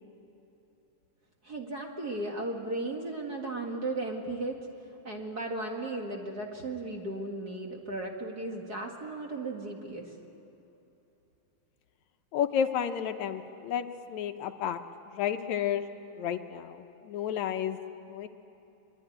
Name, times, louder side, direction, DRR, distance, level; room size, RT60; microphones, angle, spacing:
voice 1, 1.4-4.7 5.0-10.2, right 2 dB, 35° right, 1 dB, 2.0 m, -35 dB
voice 2, 12.3-14.8 15.1-15.8 16.2-17.8 18.1-18.3, left 9 dB, 75° left, 7 dB, 2.1 m, -31 dB
24.0 x 23.0 x 10.0 m, 2.9 s
omnidirectional pair, 3.5 m